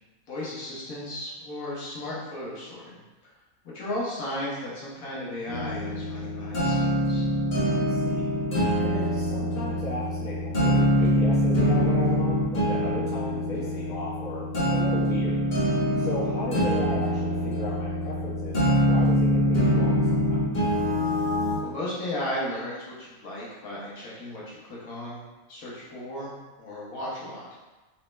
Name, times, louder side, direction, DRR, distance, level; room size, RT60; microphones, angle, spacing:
voice 1, 0.3-3.0 3.7-7.2 15.7-16.1 21.6-25.2 25.5-27.4, left 1 dB, 65° left, -7 dB, 1.3 m, -35 dB
sound 1, 5.5-21.6, equal, 35° left, 0.9 m, -24 dB
voice 2, 7.7-8.2 8.6-15.4 15.7-20.4, equal, 5° left, -11 dB, 0.8 m, -36 dB
4.1 x 2.2 x 3.0 m, 1.2 s
omnidirectional pair, 1.6 m